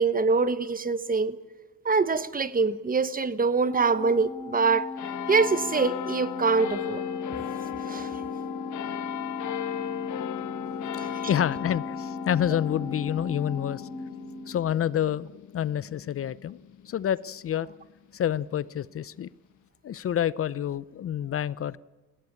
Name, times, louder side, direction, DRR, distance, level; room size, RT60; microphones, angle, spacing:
voice 1, 0.0-1.3 1.8-4.8 5.3-7.0 7.9-8.1 11.0-11.1, right 4 dB, 30° right, 1.2 m, -24 dB
Organ, 3.6-14.9, left 3 dB, 15° left, 2.2 m, -38 dB
sound 1, 5.0-17.9 18.5-18.6, left 11 dB, 75° left, 1.3 m, -37 dB
voice 2, 11.3-13.8 14.5-15.3 15.5-16.6 16.9-17.7 18.1-19.3 19.8-21.8, left 10 dB, 50° left, 0.6 m, -28 dB
20.0 x 17.0 x 8.8 m
cardioid pair, 90°, 30 cm